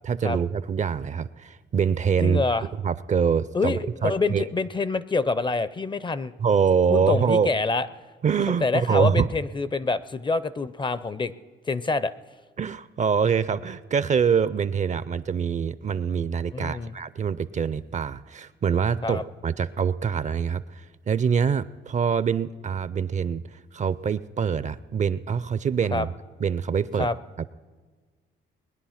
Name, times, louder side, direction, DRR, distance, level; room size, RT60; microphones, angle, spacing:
voice 1, 0.0-2.4 2.8-4.4 6.4-7.5 8.2-9.3 12.6-23.4 23.7-26.1 26.4-27.1, right 6 dB, 40° right, 16 dB, 0.5 m, -24 dB
voice 2, 2.2-2.7 3.5-6.3 6.9-7.9 8.6-11.3 11.7-12.1 16.5-17.0 19.0-19.2 25.9-26.1 27.0-27.2, left 3 dB, 25° left, 17 dB, 0.5 m, -26 dB
20.5 x 10.0 x 5.8 m, 1.4 s
cardioid pair, 90°, 20 cm